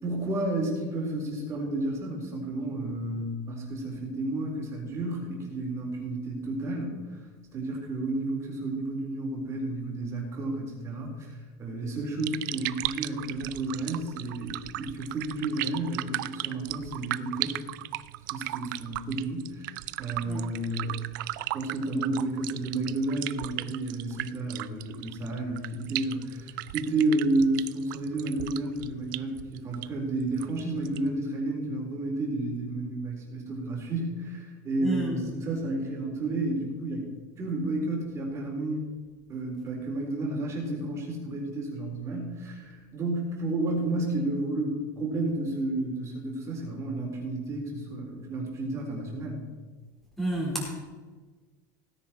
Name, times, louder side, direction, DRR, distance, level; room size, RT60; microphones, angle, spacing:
voice 1, 0.0-7.2 7.5-17.6 18.3-20.9 21.5-37.1 37.4-38.9 39.3-49.5, right 2 dB, 30° right, -1 dB, 4.1 m, -31 dB
sound 1, 12.0-31.2, right 17 dB, 85° right, 0.5 m, -37 dB
voice 2, 34.8-35.2 50.2-50.7, right 1 dB, 5° left, -3 dB, 4.2 m, -30 dB
17.0 x 9.9 x 4.5 m, 1.4 s
supercardioid pair, 150°, 10 cm